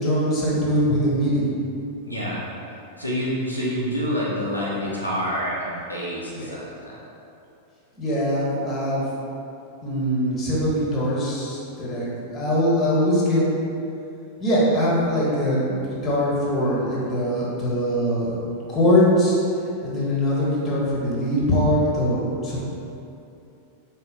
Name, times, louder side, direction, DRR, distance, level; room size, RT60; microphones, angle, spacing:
voice 1, 0.0-1.5 6.3-6.5 8.0-9.1 9.8-12.1 12.3-13.4 14.4-18.4 18.7-19.4 19.8-22.6, equal, 25° left, -6 dB, 1.2 m, -22 dB
voice 2, 2.0-2.4 3.0-7.0, equal, 85° left, -6 dB, 0.7 m, -27 dB
5.1 x 2.1 x 4.0 m, 2.7 s
figure-of-eight pair, 90°, 0 cm